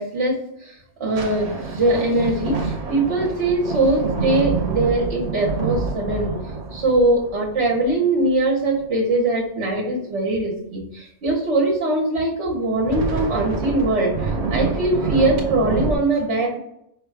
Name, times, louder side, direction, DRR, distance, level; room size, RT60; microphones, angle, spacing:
voice 1, 0.0-16.6, right 2 dB, 70° right, -3 dB, 1.2 m, -22 dB
sound 1, 1.2-8.8 12.7-16.0, right 4 dB, 50° right, 0.5 m, -27 dB
5.5 x 2.3 x 3.2 m, 0.76 s
omnidirectional pair, 1.2 m